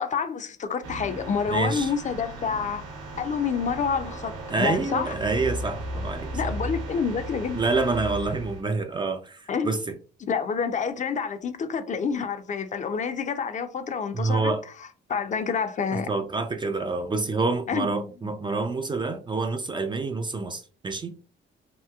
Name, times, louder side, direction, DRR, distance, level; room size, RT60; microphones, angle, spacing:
voice 1, 0.0-2.8 3.2-5.1 6.3-7.6 9.5-9.7 10.2-14.5 15.1-16.1 17.7-17.9, left 6 dB, 40° left, 0.4 m, -28 dB
sound 1, 0.8-8.6, right 1 dB, 85° right, 1.0 m, -36 dB
voice 2, 1.5-1.9 4.5-6.5 7.5-10.0 14.1-14.6 15.9-21.2, right 3 dB, 25° right, 0.3 m, -27 dB
2.9 x 2.7 x 2.3 m
cardioid pair, 90°, 20 cm